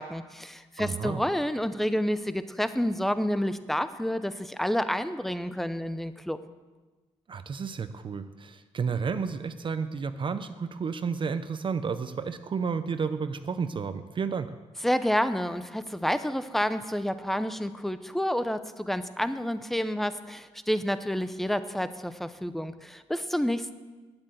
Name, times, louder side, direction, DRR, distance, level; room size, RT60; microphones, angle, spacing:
voice 1, 0.0-6.4 14.8-23.7, equal, ahead, 12 dB, 0.6 m, -29 dB
voice 2, 0.8-1.2 7.3-14.5, right 5 dB, 45° right, 10 dB, 0.6 m, -31 dB
9.9 x 8.1 x 7.9 m, 1.3 s
cardioid pair, 100°, 12 cm